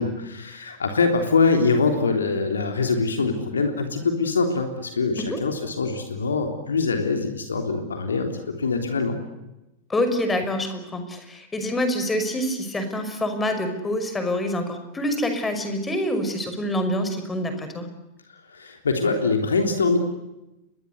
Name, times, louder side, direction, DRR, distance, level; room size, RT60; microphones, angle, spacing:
voice 1, 0.0-8.3 8.6-9.2 18.5-20.0, left 4 dB, 70° left, 5 dB, 3.4 m, -23 dB
voice 2, 9.9-17.9, left 1 dB, 15° left, 8 dB, 6.0 m, -26 dB
29.5 x 23.0 x 8.3 m, 0.93 s
figure-of-eight pair, 90°, 0 cm